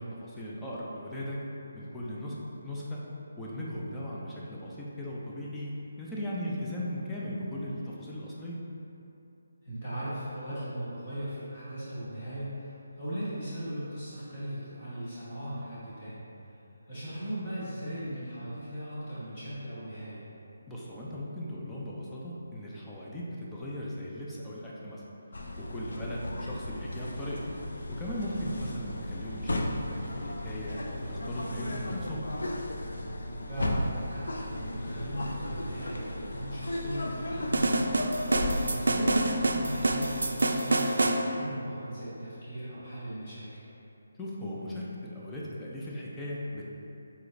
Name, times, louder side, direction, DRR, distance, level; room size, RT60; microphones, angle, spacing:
voice 1, 0.0-1.4 1.7-2.4 2.6-3.0 3.4-8.6 20.7-25.0 25.6-27.4 27.9-32.3 44.2-46.6, equal, 5° left, -7 dB, 0.4 m, -38 dB
voice 2, 9.6-16.5 16.9-20.3 33.5-37.9 38.2-43.6, right 1 dB, 25° left, -12 dB, 1.2 m, -38 dB
sound 1, 25.3-40.2, left 1 dB, 75° left, 0.5 m, -35 dB
sound 2, 37.5-41.2, right 2 dB, 85° right, 0.3 m, -26 dB
4.8 x 4.0 x 2.5 m, 2.8 s
hypercardioid pair, 175°, 0 cm